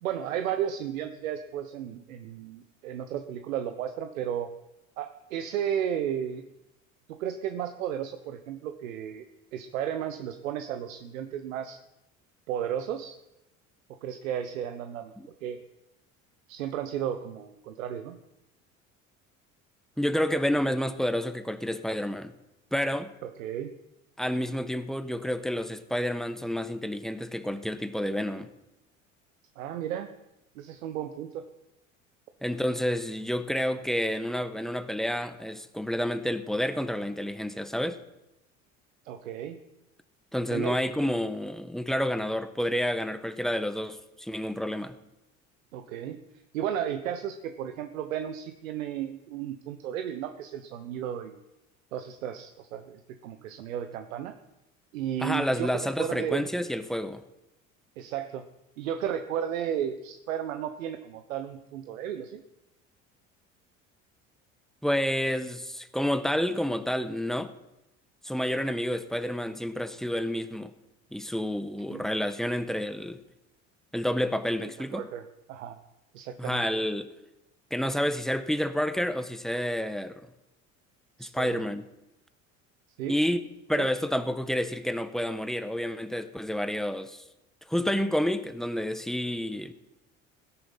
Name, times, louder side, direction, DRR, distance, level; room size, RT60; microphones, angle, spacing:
voice 1, 0.0-4.5 5.0-6.5 7.1-9.2 9.5-11.8 12.5-13.1 14.0-15.1 15.4-15.6 16.5-18.2 23.2-23.7 29.6-30.1 30.5-31.5 39.0-39.6 40.5-40.8 45.7-46.2 46.5-51.4 51.9-54.3 54.9-56.4 58.0-58.4 58.8-62.4 71.9-72.0 74.9-75.8 76.1-76.6 81.2-81.6 83.0-83.2 83.7-83.9, right 9 dB, 80° right, 1.2 m, -33 dB
voice 2, 20.0-22.3 22.7-23.1 24.2-28.5 32.4-38.0 40.3-45.0 55.2-57.2 64.8-67.5 68.2-70.7 71.1-73.2 73.9-75.1 76.4-77.1 77.7-80.2 81.2-81.8 83.1-87.2 87.7-89.7, equal, ahead, 1.3 m, -29 dB
17.0 x 10.5 x 5.7 m
hypercardioid pair, 70°, 40 cm